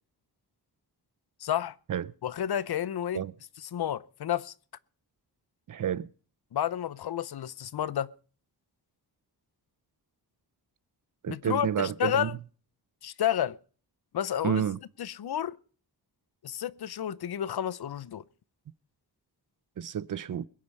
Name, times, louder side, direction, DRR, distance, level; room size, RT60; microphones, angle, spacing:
voice 1, 1.4-1.7 2.2-3.2 3.6-4.5 6.5-8.1 11.3-12.3 13.0-13.6 14.1-14.6 15.0-15.6 16.4-18.2, left 10 dB, 70° left, 0.7 m, -31 dB
voice 2, 5.7-6.1 11.2-12.3 14.4-14.8 19.8-20.5, right 9 dB, 55° right, 0.6 m, -30 dB
21.5 x 8.6 x 5.4 m
wide cardioid pair, 135°, 39 cm